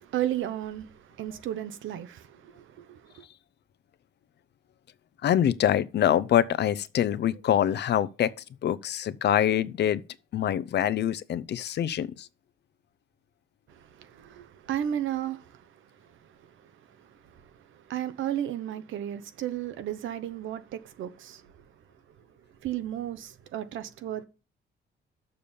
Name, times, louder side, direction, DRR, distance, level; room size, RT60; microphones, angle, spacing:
voice 1, 0.0-3.2 13.7-15.6 16.4-16.7 17.0-21.4 22.6-24.3, right 11 dB, 75° right, 0.9 m, -34 dB
voice 2, 5.2-8.3 8.6-10.0 10.3-12.3, left 10 dB, 60° left, 0.6 m, -25 dB
6.8 x 5.4 x 6.9 m
cardioid pair, 90°, 20 cm